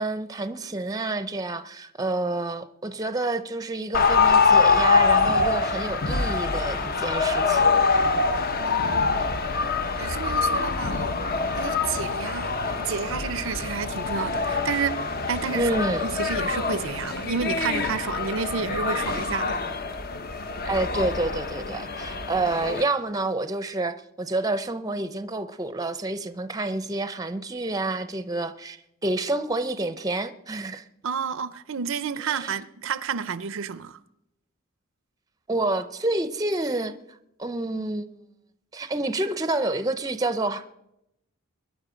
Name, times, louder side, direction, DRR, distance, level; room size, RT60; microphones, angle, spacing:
voice 1, 0.0-7.7 15.5-16.1 20.6-30.8 32.2-32.5 35.5-36.9 37.4-38.1 38.7-40.7, right 2 dB, 15° right, 0.6 m, -28 dB
sound 1, 3.9-22.8, left 4 dB, 45° left, 0.8 m, -24 dB
voice 2, 8.6-9.2 10.0-11.1 11.6-15.7 16.0-19.6 31.0-34.0, right 6 dB, 60° right, 0.5 m, -30 dB
22.5 x 10.5 x 5.1 m
head